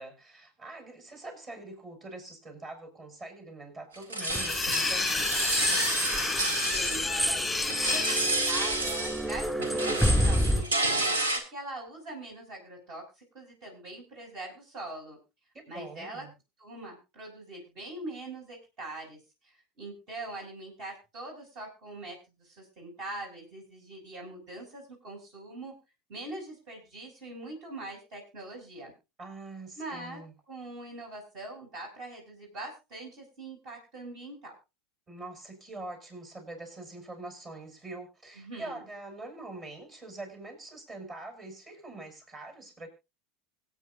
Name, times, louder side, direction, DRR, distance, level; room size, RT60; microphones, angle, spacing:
voice 1, 0.0-5.9 15.5-16.3 29.2-30.3 35.1-42.9, right 2 dB, 30° right, 5 dB, 6.3 m, -44 dB
sound 1, 3.9-7.3 7.6-9.3 9.6-11.4, right 2 dB, 85° right, 1.9 m, -30 dB
sound 2, 4.2-8.5, left 3 dB, 10° left, 0.9 m, -30 dB
sound 3, 4.3-10.6, equal, 5° right, 2.5 m, -30 dB
voice 2, 6.7-15.2 15.7-16.3 16.6-25.7 26.1-28.9 29.8-30.2 30.5-34.5 38.3-38.8, right 2 dB, 50° right, 1 dB, 6.4 m, -42 dB
25.0 x 8.7 x 2.6 m, 0.28 s
hypercardioid pair, 85°, 0 cm